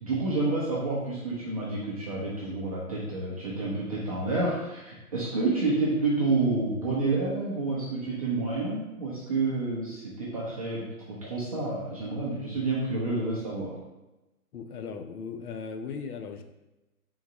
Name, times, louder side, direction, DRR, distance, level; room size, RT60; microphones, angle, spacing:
voice 1, 0.0-13.8, right 3 dB, 25° right, -6 dB, 0.5 m, -29 dB
voice 2, 14.5-16.4, left 5 dB, 75° left, 7 dB, 0.7 m, -37 dB
3.8 x 2.6 x 4.6 m, 0.99 s
hypercardioid pair, 145°, 45 cm